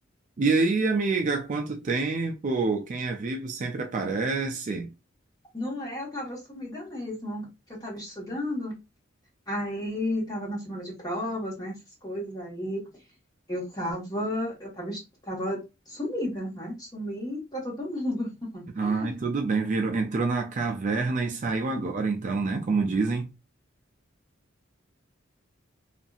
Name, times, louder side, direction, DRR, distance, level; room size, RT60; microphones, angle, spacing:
voice 1, 0.4-4.9 18.8-23.3, right 3 dB, 40° right, 0.4 m, -27 dB
voice 2, 5.5-8.7 9.5-12.8 13.5-15.6 15.9-19.2, left 1 dB, 20° left, 1.3 m, -33 dB
2.7 x 2.5 x 2.3 m
head